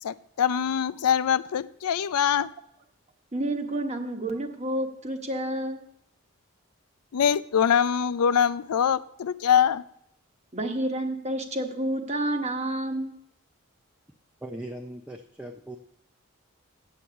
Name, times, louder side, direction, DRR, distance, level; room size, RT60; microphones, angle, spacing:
voice 1, 0.0-2.5 7.1-9.8, left 8 dB, 90° left, 15 dB, 0.4 m, -23 dB
voice 2, 3.3-5.8 10.5-13.1, right 1 dB, 30° right, 4 dB, 1.1 m, -29 dB
voice 3, 14.4-15.8, right 1 dB, 5° right, 3 dB, 0.5 m, -39 dB
8.5 x 7.8 x 6.9 m, 0.75 s
head